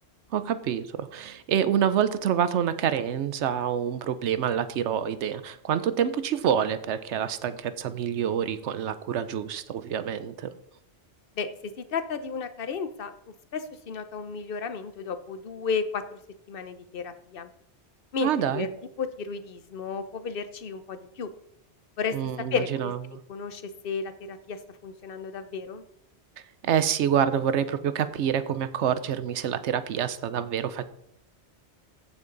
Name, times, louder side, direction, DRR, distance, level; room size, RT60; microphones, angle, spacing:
voice 1, 0.3-10.5 18.2-18.7 22.1-23.2 26.6-30.8, right 9 dB, 75° right, 13 dB, 1.0 m, -27 dB
voice 2, 11.8-13.1 13.5-16.0 16.5-17.5 18.1-18.7 19.0-21.3 22.0-22.1 22.5-22.9 23.3-25.8, left 5 dB, 55° left, 10 dB, 0.9 m, -33 dB
15.0 x 5.9 x 3.9 m, 0.75 s
omnidirectional pair, 1.2 m